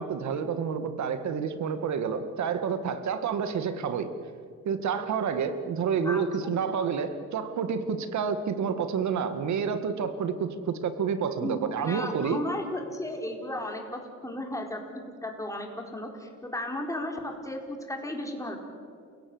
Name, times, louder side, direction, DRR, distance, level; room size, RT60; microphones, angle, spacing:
voice 1, 0.0-4.1 4.7-12.4, right 6 dB, 70° right, 10 dB, 2.0 m, -29 dB
voice 2, 6.0-6.6 11.4-18.6, left 1 dB, 10° left, 2 dB, 4.3 m, -35 dB
29.5 x 17.0 x 7.9 m, 2.2 s
cardioid pair, 90°, 30 cm